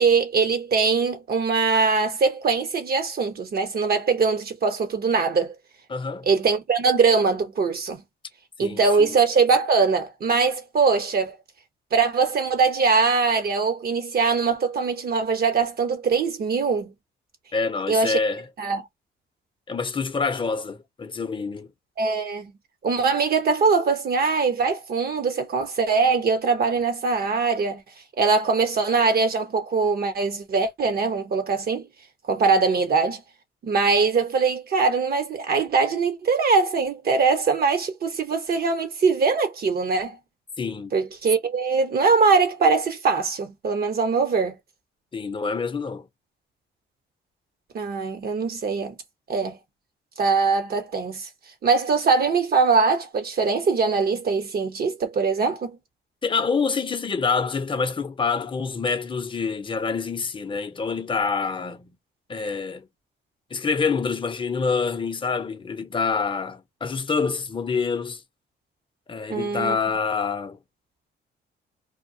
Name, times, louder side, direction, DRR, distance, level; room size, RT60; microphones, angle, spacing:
voice 1, 0.0-5.5 6.3-8.0 8.6-11.4 11.9-16.9 17.9-18.2 18.6-18.8 22.0-22.5 22.8-27.8 28.2-31.9 32.3-33.2 33.6-40.2 40.9-44.6 47.7-48.9 49.3-49.6 50.2-51.3 51.6-55.8 69.3-69.8, right 4 dB, 50° right, 1.0 m, -22 dB
voice 2, 5.9-6.3 8.6-9.1 17.5-18.4 19.7-21.7 40.6-40.9 45.1-46.1 56.2-61.9 62.3-62.9 63.5-68.2 69.1-70.6, left 5 dB, 25° left, 0.7 m, -26 dB
2.3 x 2.2 x 2.7 m
cardioid pair, 90°, 20 cm